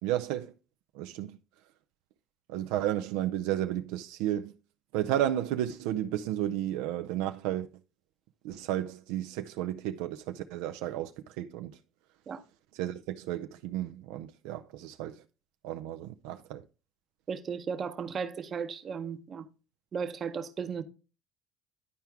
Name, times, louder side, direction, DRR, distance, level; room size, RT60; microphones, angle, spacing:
voice 1, 0.0-0.5 0.9-1.4 2.5-4.5 4.9-7.7 8.4-11.7 12.7-15.1 15.6-16.6, right 12 dB, 80° right, 0.4 m, -32 dB
voice 2, 17.3-19.5 19.9-20.8, right 6 dB, 40° right, 0.8 m, -35 dB
10.5 x 4.5 x 3.4 m
supercardioid pair, 100°, 0 cm